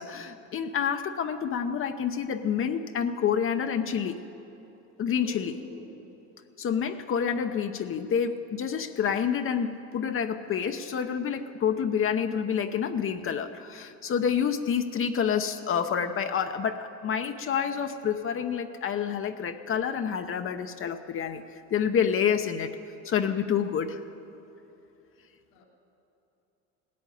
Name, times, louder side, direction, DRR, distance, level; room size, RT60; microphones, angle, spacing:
voice 1, 0.0-4.2 5.0-5.6 6.6-21.4 21.7-22.7 23.0-24.0, left 7 dB, 40° left, 7 dB, 0.9 m, -28 dB
voice 2, 5.2-6.1 25.5-25.6, left 3 dB, 90° left, -2 dB, 2.7 m, -44 dB
17.5 x 8.5 x 9.4 m, 3.0 s
supercardioid pair, 105°, 33 cm